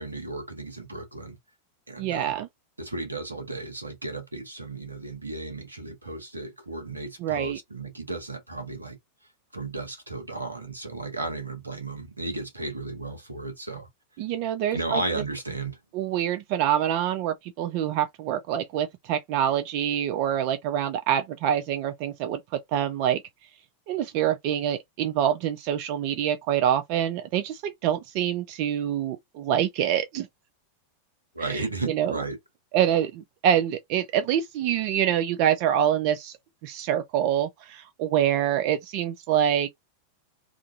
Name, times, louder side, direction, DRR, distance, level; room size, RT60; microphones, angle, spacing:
voice 1, 0.0-1.4 1.9-2.3 2.8-9.0 9.5-13.9 14.7-15.8 31.3-32.4, right 2 dB, 80° right, 0.8 m, -34 dB
voice 2, 2.0-2.5 7.2-7.6 14.2-15.0 15.9-22.4 22.7-23.2 23.9-30.3 31.4-32.2 32.7-36.4 36.6-39.7, right 10 dB, 45° right, 0.3 m, -26 dB
2.4 x 2.3 x 2.5 m
figure-of-eight pair, 90°, 0 cm